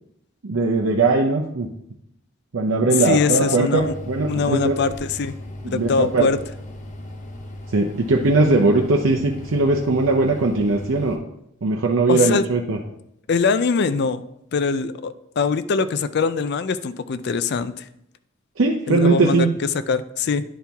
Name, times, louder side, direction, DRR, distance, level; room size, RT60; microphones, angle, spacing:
voice 1, 0.4-1.7 2.5-4.8 5.6-6.3 7.7-11.2 11.6-12.8 18.6-19.5, right 3 dB, 75° right, 1 dB, 0.7 m, -19 dB
voice 2, 3.1-3.9 4.3-5.4 5.6-6.4 12.1-12.4 13.3-14.2 14.5-17.8 18.9-19.5 19.9-20.4, left 5 dB, 55° left, 13 dB, 0.4 m, -22 dB
sound 1, 3.7-11.2, left 1 dB, 35° left, 0.8 m, -37 dB
10.0 x 4.4 x 3.5 m, 0.77 s
head